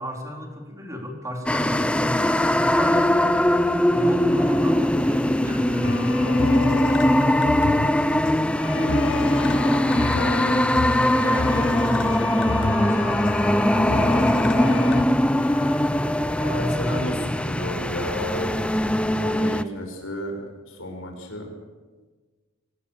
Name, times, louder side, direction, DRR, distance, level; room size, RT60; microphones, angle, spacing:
voice 1, 0.0-3.1 3.9-7.0 9.9-14.3, equal, 15° right, 1 dB, 4.0 m, -35 dB
sound 1, 1.5-19.6, left 1 dB, 5° left, 0.6 m, -21 dB
sound 2, 5.8-15.0, left 4 dB, 65° left, 0.8 m, -30 dB
Wind instrument woodwind instrument, 12.5-15.9, left 4 dB, 60° right, 3.7 m, -47 dB
voice 2, 16.4-18.6 19.1-21.5, equal, 85° left, 3 dB, 6.2 m, -32 dB
25.5 x 19.0 x 7.1 m, 1.3 s
head